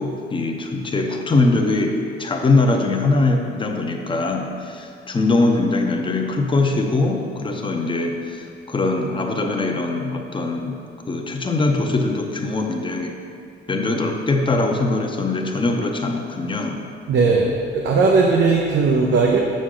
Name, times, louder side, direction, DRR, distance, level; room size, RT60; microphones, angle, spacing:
voice 1, 0.0-10.8 11.1-13.2 13.7-16.9, left 2 dB, 25° left, 3 dB, 0.8 m, -22 dB
voice 2, 17.1-19.4, right 4 dB, 70° right, 0 dB, 0.7 m, -17 dB
6.3 x 6.3 x 3.8 m, 2.4 s
cardioid pair, 90°, 20 cm